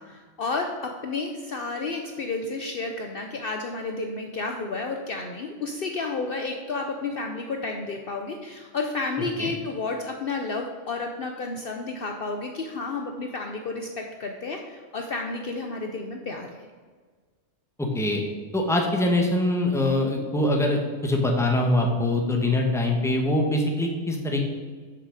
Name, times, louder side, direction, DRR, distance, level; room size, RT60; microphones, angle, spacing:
voice 1, 0.0-16.6, left 3 dB, 55° left, 3 dB, 0.8 m, -31 dB
voice 2, 17.8-18.2 18.5-24.4, left 1 dB, ahead, 1 dB, 1.1 m, -23 dB
6.8 x 5.9 x 6.3 m, 1.5 s
omnidirectional pair, 1.3 m